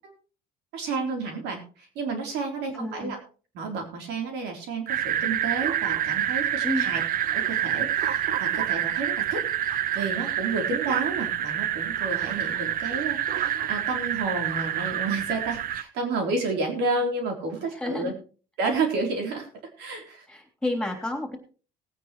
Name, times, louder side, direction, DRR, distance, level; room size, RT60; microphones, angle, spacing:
voice 1, 0.7-3.2 3.5-7.0 7.3-18.1 18.6-19.5 19.8-20.3, right 3 dB, 90° right, 3 dB, 3.7 m, -31 dB
voice 2, 2.7-3.1 6.6-6.9 17.7-18.1 20.3-21.4, left 1 dB, 5° left, 3 dB, 3.3 m, -30 dB
sound 1, 4.9-15.8, right 10 dB, 55° right, 0.7 m, -27 dB
19.0 x 9.2 x 3.1 m, 0.38 s
cardioid pair, 110°, 17 cm